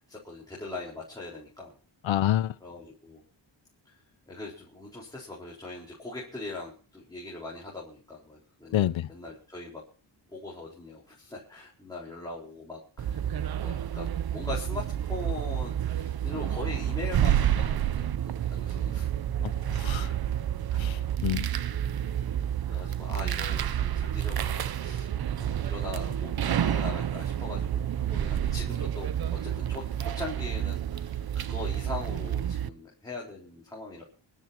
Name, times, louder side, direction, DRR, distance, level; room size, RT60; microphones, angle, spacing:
voice 1, 0.0-1.7 2.6-3.2 3.8-3.9 4.3-9.8 10.3-13.2 13.6-19.1 19.4-19.6 22.7-25.1 25.4-34.0, left 2 dB, 10° left, 4.5 m, -41 dB
voice 2, 2.0-2.5 8.7-9.1 19.4-20.1 20.8-21.5, left 13 dB, 80° left, 0.7 m, -28 dB
sound 1, 13.0-32.7, right 10 dB, 55° right, 0.6 m, -29 dB
27.0 x 13.0 x 2.9 m
wide cardioid pair, 160°, 46 cm